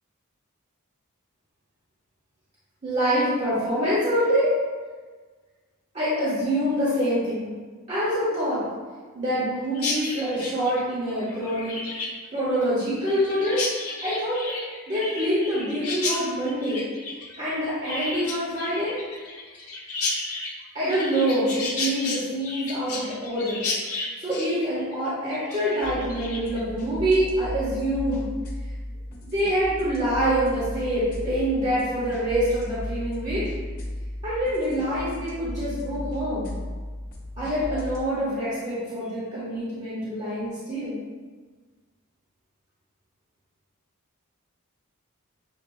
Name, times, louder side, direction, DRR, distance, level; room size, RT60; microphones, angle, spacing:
voice 1, 2.8-4.5 5.9-7.5 7.9-8.6 9.1-11.8 12.3-13.7 14.0-14.6 14.9-16.8 17.4-19.0 20.7-23.6 24.2-28.3 29.2-33.4 34.2-36.5 37.4-41.0, equal, 30° right, -11 dB, 1.1 m, -25 dB
Chirp tweet, 9.7-26.6, left 3 dB, 75° left, 0.8 m, -33 dB
sound 1, 25.8-38.0, left 1 dB, 40° left, 0.9 m, -35 dB
7.0 x 2.4 x 2.7 m, 1.4 s
head